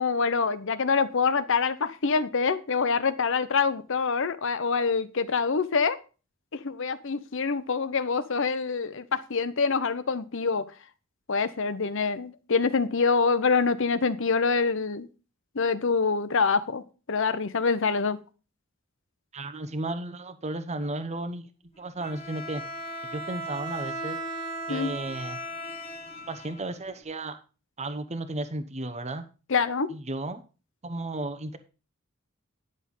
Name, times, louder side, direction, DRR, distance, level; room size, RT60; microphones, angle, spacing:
voice 1, 0.0-6.0 6.5-10.7 11.3-15.1 15.5-18.2 24.7-24.9 29.5-29.9, left 5 dB, 65° left, 14 dB, 0.8 m, -25 dB
voice 2, 19.3-21.5 21.8-22.6 23.1-24.2 24.7-25.4 26.3-27.4 27.8-29.2 29.9-30.4 30.8-31.6, right 2 dB, 35° right, 9 dB, 0.9 m, -34 dB
Bowed string instrument, 22.0-27.0, right 1 dB, 30° left, 1.6 m, -37 dB
10.5 x 6.6 x 5.5 m, 0.34 s
head